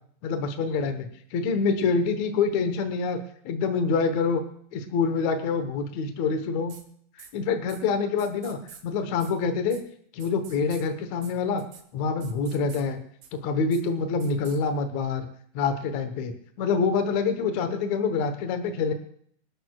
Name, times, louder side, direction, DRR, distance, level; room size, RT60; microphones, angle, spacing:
voice 1, 0.2-3.2 3.5-4.4 4.7-6.8 7.2-9.8 10.1-11.6 11.9-13.0 13.3-15.3 15.5-18.9, left 5 dB, 65° left, 7 dB, 2.3 m, -26 dB
sound 1, 6.7-6.8 7.2-7.3 7.7-7.8 8.2-8.8 9.2-9.3 9.7-9.8 10.2-10.8 11.2-11.3 11.6-11.8 12.2-12.8 13.2-13.3 13.7-13.8 14.2-14.6, right 7 dB, 85° right, 3.1 m, -47 dB
26.5 x 13.0 x 2.3 m, 0.62 s
omnidirectional pair, 3.7 m